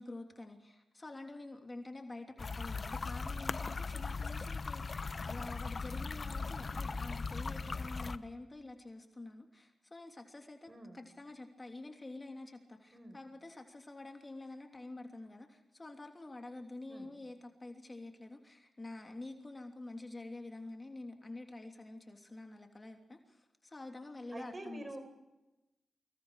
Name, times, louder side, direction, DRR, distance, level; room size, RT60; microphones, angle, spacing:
voice 1, 0.0-25.0, left 2 dB, 30° left, 4 dB, 3.1 m, -48 dB
sound 1, 2.4-8.2, left 4 dB, 50° left, 1.0 m, -39 dB
voice 2, 10.7-11.0 12.9-13.2 16.9-17.1 24.3-25.0, right 1 dB, 35° right, 6 dB, 5.4 m, -46 dB
26.0 x 21.5 x 5.0 m, 1.0 s
supercardioid pair, 40°, 0 cm